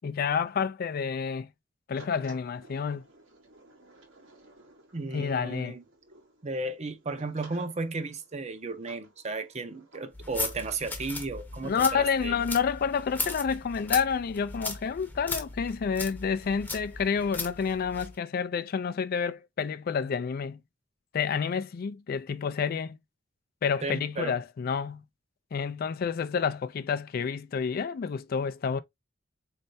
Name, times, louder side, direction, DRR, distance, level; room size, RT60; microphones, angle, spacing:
voice 1, 0.0-1.5 1.9-3.0 5.1-5.8 11.6-20.6 21.1-23.0 23.6-25.0 25.5-28.8, left 6 dB, 50° left, 0.3 m, -29 dB
sound 1, 1.9-11.1, right 2 dB, 90° right, 1.6 m, -56 dB
voice 2, 4.9-5.8 6.4-12.4 23.8-24.3, right 3 dB, 35° right, 0.6 m, -34 dB
sound 2, 10.1-18.2, left 3 dB, 10° left, 0.8 m, -37 dB
4.3 x 3.3 x 2.6 m
head